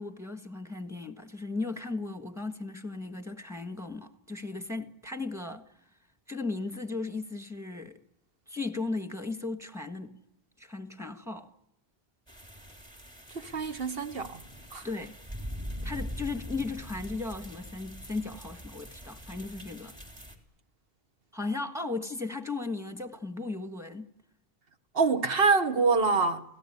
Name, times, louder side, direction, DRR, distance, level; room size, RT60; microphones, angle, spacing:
voice 1, 0.0-5.6 6.3-8.0 8.5-10.2 10.6-11.5 14.8-15.2 15.8-19.9 21.3-24.1, left 3 dB, 5° right, 1.5 m, -36 dB
sound 1, 12.3-20.4, equal, 25° right, 3.5 m, -43 dB
voice 2, 13.3-14.4 14.7-14.8 24.9-26.4, right 4 dB, 65° right, 1.6 m, -25 dB
28.5 x 17.5 x 9.9 m
omnidirectional pair, 1.1 m